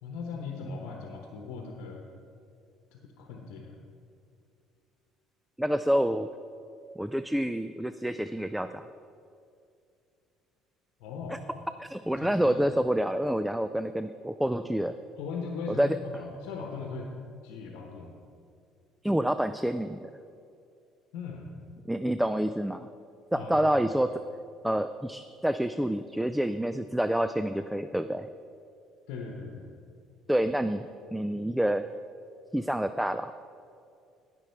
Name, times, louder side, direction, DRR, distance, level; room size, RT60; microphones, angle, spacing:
voice 1, 0.0-2.0 2.9-3.8 11.0-11.4 12.2-12.6 15.2-17.1 17.4-18.1 21.1-21.5 23.3-23.7 29.1-29.7, left 4 dB, 80° left, 1 dB, 1.0 m, -39 dB
voice 2, 5.6-6.3 7.0-8.9 11.3-11.4 11.8-14.9 15.7-16.0 19.0-20.1 21.9-22.9 23.3-24.2 24.6-28.3 30.3-31.9 32.5-33.3, right 1 dB, 5° right, 11 dB, 0.3 m, -28 dB
16.0 x 6.0 x 4.6 m, 2.5 s
supercardioid pair, 95°, 0 cm